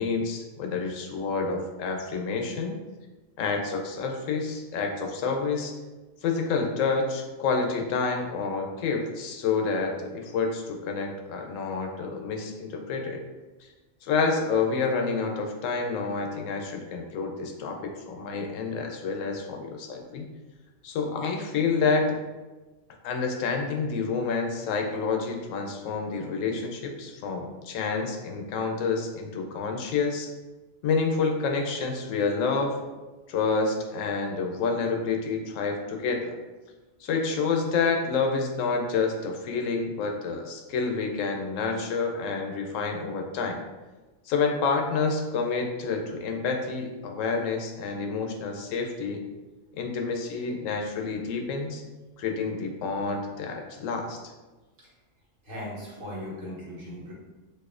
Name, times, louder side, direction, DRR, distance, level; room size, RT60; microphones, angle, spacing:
voice 1, 0.0-2.7 3.4-5.7 6.2-13.2 14.0-20.3 20.8-22.2 23.0-30.3 30.8-32.8 33.3-36.3 37.0-43.6 44.3-49.2 49.8-51.8 52.2-54.2, left 4 dB, 80° left, 3 dB, 0.9 m, -28 dB
voice 2, 55.5-57.1, left 1 dB, 85° right, -6 dB, 1.5 m, -38 dB
4.1 x 2.6 x 2.4 m, 1.2 s
omnidirectional pair, 1.3 m